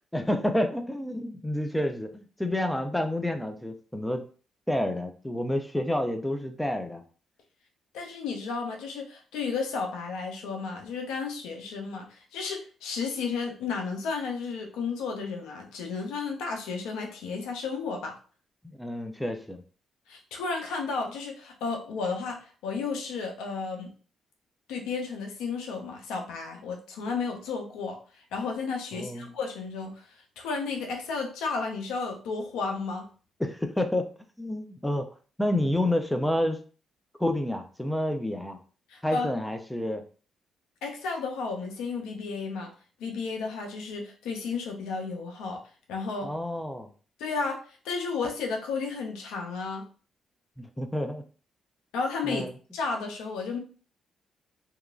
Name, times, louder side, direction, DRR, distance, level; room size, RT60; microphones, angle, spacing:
voice 1, 0.1-4.2 4.7-7.0 18.6-19.6 28.9-29.3 33.4-34.1 34.4-35.1 35.4-36.6 37.2-38.6 39.0-40.0 46.2-46.9 50.6-51.2 52.2-52.5, left 1 dB, 5° left, 6 dB, 0.4 m, -29 dB
voice 2, 7.9-18.1 20.1-23.9 24.7-28.0 28.3-30.1 30.4-33.1 38.9-39.3 40.8-42.7 43.0-45.6 45.9-46.3 47.2-47.6 47.8-49.8 51.9-52.4 52.7-53.6, left 4 dB, 85° left, 2 dB, 0.6 m, -33 dB
2.9 x 2.4 x 2.3 m, 0.39 s
supercardioid pair, 65°, 0 cm